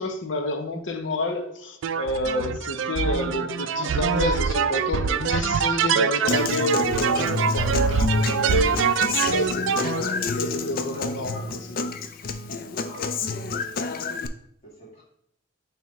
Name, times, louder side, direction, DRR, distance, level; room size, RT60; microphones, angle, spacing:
voice 1, 0.0-11.9, left 1 dB, 70° left, 6 dB, 0.8 m, -29 dB
sound 1, 1.8-10.0, right 6 dB, 75° right, 0.3 m, -24 dB
Human voice / Acoustic guitar, 6.3-14.3, left 4 dB, 45° left, 0.4 m, -29 dB
voice 2, 9.5-10.5 10.9-11.4 12.7-14.1 14.6-15.0, right 1 dB, 30° left, -7 dB, 2.4 m, -43 dB
9.1 x 3.4 x 3.1 m, 0.71 s
head